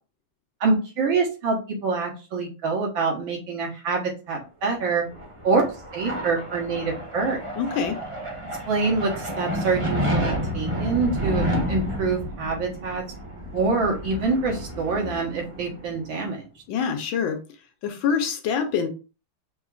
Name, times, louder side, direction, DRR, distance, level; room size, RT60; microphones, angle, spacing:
voice 1, 0.6-5.0 5.4-7.4 8.7-13.0 13.5-16.4, right 4 dB, 70° right, 0 dB, 2.0 m, -25 dB
sound 1, 4.9-16.2, equal, 20° right, 0.9 m, -30 dB
voice 2, 7.5-8.0 16.7-17.4 17.8-18.9, left 6 dB, 75° left, 5 dB, 1.5 m, -25 dB
6.2 x 2.9 x 2.4 m, 0.32 s
omnidirectional pair, 2.3 m